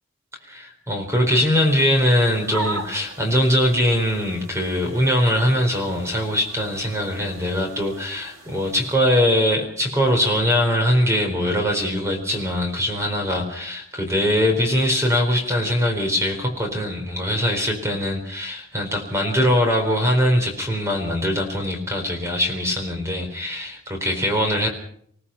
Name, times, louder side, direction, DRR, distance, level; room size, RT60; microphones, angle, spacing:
voice 1, 0.4-24.7, equal, 15° right, 3 dB, 4.2 m, -22 dB
sound 1, 1.6-8.9, right 2 dB, 80° right, 4.6 m, -38 dB
27.0 x 18.0 x 5.8 m, 0.65 s
head